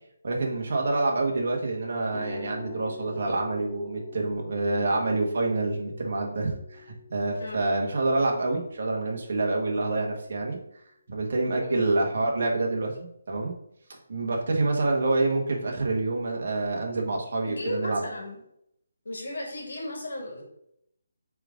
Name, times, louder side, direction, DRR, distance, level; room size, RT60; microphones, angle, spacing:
voice 1, 0.2-10.6 11.1-13.5 14.1-18.0, right 2 dB, 45° right, 0 dB, 1.6 m, -27 dB
sound 1, 2.1-10.1, left 5 dB, 10° left, 0.5 m, -46 dB
voice 2, 7.4-7.8 11.6-11.9 17.4-18.4 19.0-20.4, left 1 dB, 90° left, -1 dB, 2.4 m, -35 dB
7.8 x 3.7 x 3.8 m, 0.74 s
hypercardioid pair, 175°, 0 cm